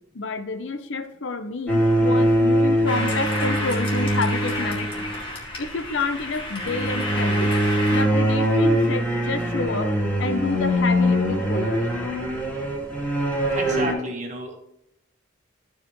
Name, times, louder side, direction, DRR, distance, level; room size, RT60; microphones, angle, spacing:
voice 1, 0.1-5.1 5.6-7.6 7.9-11.9, left 3 dB, 65° left, 10 dB, 0.8 m, -29 dB
sound 1, 1.7-5.2 6.6-13.9, equal, 10° left, 2.0 m, -22 dB
sound 2, 2.9-8.0, left 1 dB, 25° left, 1.8 m, -31 dB
voice 2, 13.5-14.6, right 2 dB, 35° right, 1 dB, 1.6 m, -31 dB
13.5 x 4.9 x 3.1 m, 0.81 s
head